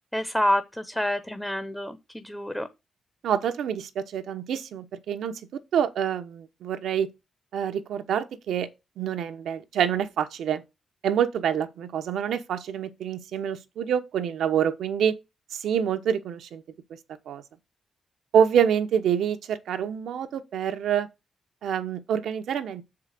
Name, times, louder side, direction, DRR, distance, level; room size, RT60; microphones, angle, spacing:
voice 1, 0.1-2.7, left 1 dB, 5° left, 0.6 m, -28 dB
voice 2, 3.2-5.3 5.7-7.1 7.5-8.7 9.0-10.6 11.0-15.2 15.5-16.6 17.3-17.4 18.3-21.1 21.6-22.8, right 8 dB, 90° right, 0.9 m, -26 dB
6.8 x 4.8 x 6.4 m
wide cardioid pair, 150°, 0 cm